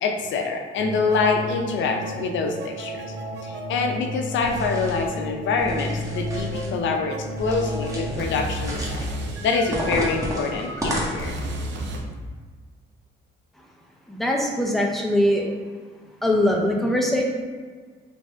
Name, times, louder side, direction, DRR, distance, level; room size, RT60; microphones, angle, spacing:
voice 1, 0.0-3.1 3.4-9.1 9.4-11.3, left 4 dB, 70° left, 3 dB, 0.6 m, -25 dB
sound 1, 0.8-12.0, equal, 65° right, 0.6 m, -32 dB
sound 2, 4.4-5.1 5.6-6.7 7.4-8.3 8.5-9.1 9.7-11.5, equal, 15° right, 1.0 m, -32 dB
voice 2, 14.1-15.4 16.2-17.2, left 1 dB, ahead, -1 dB, 0.7 m, -21 dB
3.3 x 2.6 x 3.2 m, 1.5 s
cardioid pair, 90°, 20 cm